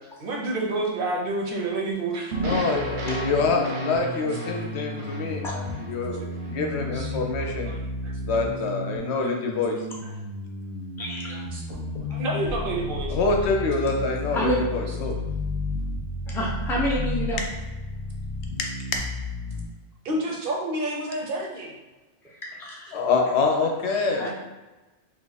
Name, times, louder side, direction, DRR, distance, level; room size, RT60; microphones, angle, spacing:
voice 1, 0.2-2.4 5.0-5.1 6.1-6.3 6.9-7.1 7.5-8.4 9.2-9.3 11.3-11.6 12.1-13.2 20.0-21.7, right 2 dB, 60° right, 0 dB, 0.7 m, -29 dB
sound 1, 2.3-6.6, right 2 dB, 85° right, 1.0 m, -34 dB
voice 2, 2.4-7.7 8.2-9.8 13.1-15.2 22.9-24.3, left 4 dB, 75° left, 2 dB, 0.9 m, -26 dB
sound 2, 2.7-19.7, left 1 dB, 50° left, 0.6 m, -32 dB
voice 3, 11.0-11.4 14.3-14.6 16.3-17.4 22.2-23.0 24.1-24.3, equal, 5° left, -3 dB, 0.3 m, -28 dB
2.7 x 2.4 x 3.9 m, 1.1 s
omnidirectional pair, 1.1 m